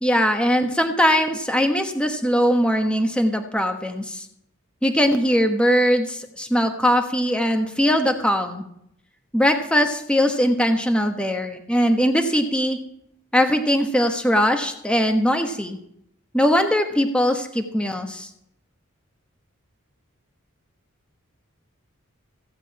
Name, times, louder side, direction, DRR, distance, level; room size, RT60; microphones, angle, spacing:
voice 1, 0.0-4.2 4.8-8.6 9.3-12.8 13.3-15.8 16.3-18.3, equal, 5° left, 5 dB, 1.1 m, -20 dB
15.5 x 5.3 x 8.5 m, 0.74 s
head